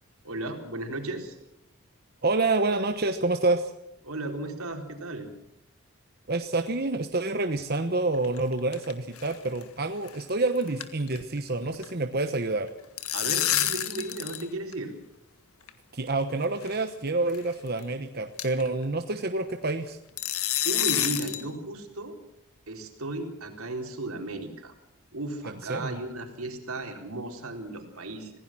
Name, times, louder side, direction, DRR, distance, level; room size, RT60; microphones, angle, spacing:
voice 1, 0.2-1.4 4.0-5.3 13.1-14.9 20.6-22.2 22.7-24.7 25.1-28.3, right 2 dB, 85° right, 3 dB, 4.2 m, -35 dB
voice 2, 2.2-3.7 6.3-12.7 15.9-20.0 25.7-26.0, right 2 dB, 45° right, 7 dB, 1.1 m, -28 dB
sound 1, 8.1-8.9 9.2-9.3 9.6-9.7 10.1-10.3 10.6-11.4 11.6-11.9 12.7-14.5 14.7-14.8 15.7-15.8 16.6-16.8 17.3-17.4 17.8-17.9 18.4-18.7 20.2-21.5, left 11 dB, 85° left, 1.7 m, -28 dB
26.0 x 17.0 x 6.2 m, 0.81 s
head